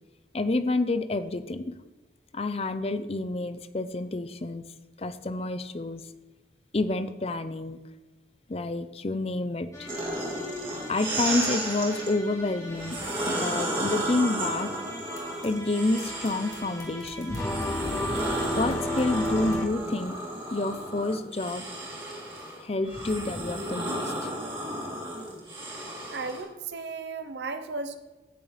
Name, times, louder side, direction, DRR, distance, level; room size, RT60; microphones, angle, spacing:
voice 1, 0.3-1.7 2.3-4.6 5.0-6.0 6.7-7.8 8.5-9.9 10.9-13.0 13.3-14.7 15.4-17.4 18.6-20.2 20.5-21.6 22.6-24.1, left 2 dB, 35° left, 11 dB, 0.6 m, -28 dB
sound 1, 9.7-19.7, left 1 dB, 20° left, 1.9 m, -35 dB
sound 2, 9.9-12.1 12.7-16.8 17.3-26.4, right 1 dB, 30° right, 2.9 m, -33 dB
voice 2, 26.1-28.0, right 4 dB, 70° right, 9 dB, 0.8 m, -35 dB
16.0 x 7.0 x 3.2 m, 1.1 s
head